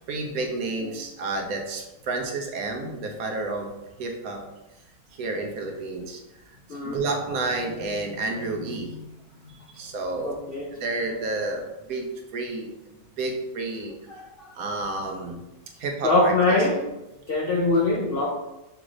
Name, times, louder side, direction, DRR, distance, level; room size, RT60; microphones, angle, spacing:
voice 1, 0.1-3.7 4.0-4.4 5.1-6.2 6.8-9.1 9.4-10.4 10.8-12.7 13.2-14.0 14.5-15.4 15.8-16.6, right 2 dB, 70° right, 3 dB, 1.0 m, -30 dB
voice 2, 10.2-10.7 14.1-14.2 16.0-16.8 17.3-18.3, left 2 dB, 65° left, -2 dB, 0.5 m, -22 dB
5.9 x 2.5 x 3.0 m, 0.94 s
omnidirectional pair, 1.7 m